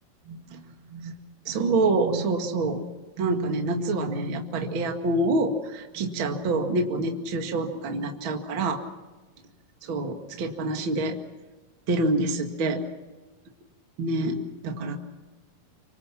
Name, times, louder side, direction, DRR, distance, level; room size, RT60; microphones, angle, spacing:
voice 1, 0.3-0.6 0.9-1.2 1.5-2.8 3.2-8.8 9.8-11.2 11.9-12.8 14.0-15.0, right 2 dB, 40° right, 3 dB, 2.2 m, -26 dB
27.5 x 24.5 x 6.0 m, 1.2 s
omnidirectional pair, 4.5 m